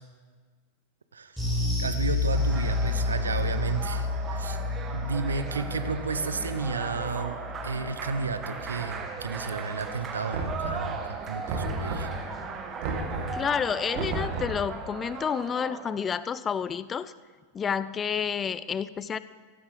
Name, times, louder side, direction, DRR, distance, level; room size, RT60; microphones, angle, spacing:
sound 1, 1.4-10.0 10.3-10.5 10.9-11.0, left 3 dB, ahead, 4.8 m, -31 dB
voice 1, 1.8-4.6 4.9-7.4 7.6-12.2, right 4 dB, 75° right, 11 dB, 0.7 m, -32 dB
sound 2, 2.3-16.0, right 5 dB, 25° right, 1.3 m, -38 dB
Knock, 10.3-11.1 11.5-12.3 12.8-13.4 13.9-14.7, right 2 dB, 45° right, 1.8 m, -32 dB
voice 2, 13.3-17.1 17.5-19.2, left 7 dB, 20° left, 16 dB, 0.4 m, -29 dB
15.0 x 13.0 x 3.8 m, 1.5 s
figure-of-eight pair, 90°, 0 cm